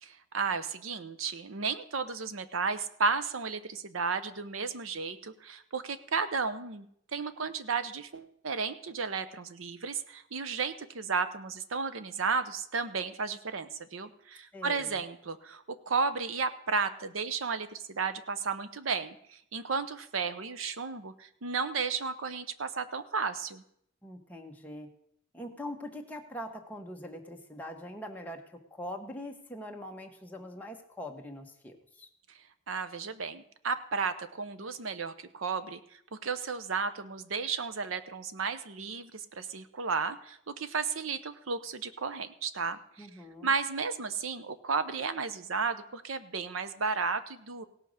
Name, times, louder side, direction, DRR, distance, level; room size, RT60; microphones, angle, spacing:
voice 1, 0.0-6.9 7.1-23.6 32.7-43.1 43.4-47.6, right 5 dB, 80° right, 12 dB, 0.8 m, -33 dB
voice 2, 14.5-14.9 24.0-24.9 25.3-32.1 43.0-43.5, left 1 dB, 10° left, 1 dB, 1.2 m, -43 dB
17.0 x 5.8 x 6.4 m, 0.71 s
head